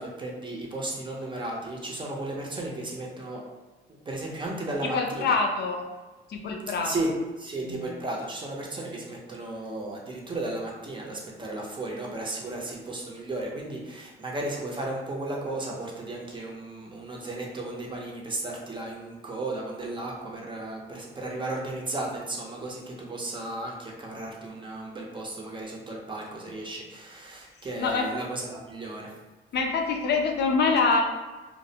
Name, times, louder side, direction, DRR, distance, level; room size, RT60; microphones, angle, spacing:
voice 1, 0.0-3.4 4.1-5.4 6.8-7.1 7.4-29.1, right 2 dB, 25° right, -2 dB, 0.5 m, -34 dB
voice 2, 4.8-5.8 6.3-7.2 7.6-7.8 27.8-28.1 29.5-31.0, left 4 dB, 55° left, 2 dB, 0.4 m, -25 dB
2.3 x 2.0 x 2.7 m, 1.2 s
cardioid pair, 90°, 20 cm